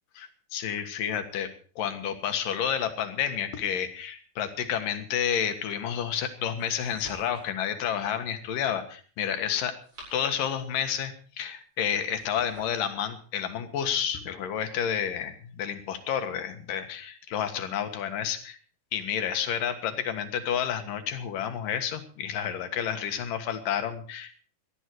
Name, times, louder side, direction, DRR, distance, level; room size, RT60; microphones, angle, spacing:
voice 1, 0.2-1.5 1.8-9.8 10.1-18.6 18.9-24.4, left 8 dB, 90° left, 8 dB, 3.3 m, -30 dB
sound 1, 6.6-7.6 9.6-10.7 12.0-12.9, right 1 dB, 45° right, 9.1 m, -50 dB
18.5 x 13.0 x 4.7 m, 0.42 s
omnidirectional pair, 3.7 m